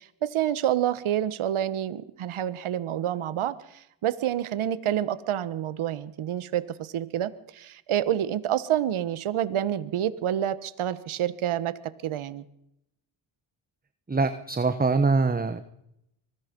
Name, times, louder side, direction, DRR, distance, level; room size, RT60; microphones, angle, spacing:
voice 1, 0.0-11.7 12.0-12.4, right 11 dB, 80° right, 16 dB, 1.4 m, -28 dB
voice 2, 14.1-15.6, right 4 dB, 20° right, 11 dB, 1.2 m, -23 dB
24.5 x 20.0 x 5.3 m, 0.80 s
cardioid pair, 85°, 49 cm